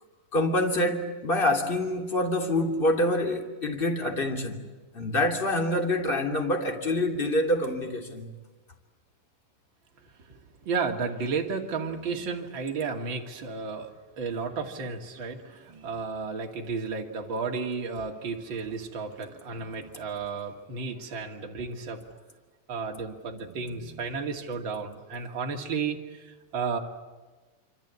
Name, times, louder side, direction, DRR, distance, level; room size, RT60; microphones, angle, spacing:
voice 1, 0.3-4.6 4.9-8.3, left 1 dB, 15° left, 2.7 m, -26 dB
voice 2, 10.2-22.1 22.7-26.8, right 5 dB, 35° right, 2.8 m, -33 dB
26.5 x 26.0 x 8.5 m
omnidirectional pair, 4.1 m